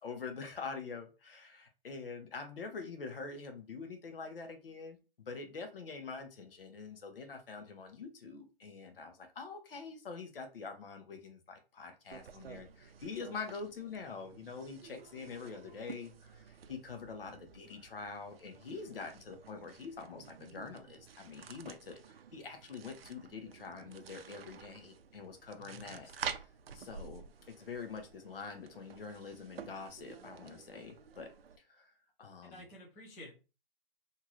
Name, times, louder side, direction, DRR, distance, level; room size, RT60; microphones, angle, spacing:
voice 1, 0.0-5.0 5.3-26.1 26.7-31.3 31.6-32.7, left 4 dB, 70° left, 6 dB, 0.9 m, -45 dB
sound 1, 12.1-31.6, right 7 dB, 80° right, 0.5 m, -50 dB
voice 2, 25.6-26.3 32.4-33.3, left 1 dB, 10° left, -4 dB, 0.6 m, -52 dB
2.8 x 2.4 x 2.9 m, 0.31 s
hypercardioid pair, 150°, 29 cm